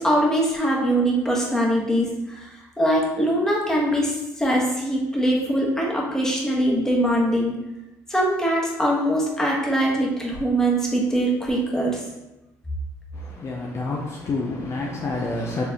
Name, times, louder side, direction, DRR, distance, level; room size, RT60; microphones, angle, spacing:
voice 1, 0.0-7.5 8.1-12.0, right 1 dB, 5° left, 1.2 m, -22 dB
voice 2, 13.1-15.7, left 3 dB, 40° left, 0.5 m, -28 dB
4.5 x 3.3 x 2.9 m
supercardioid pair, 90°, 7 cm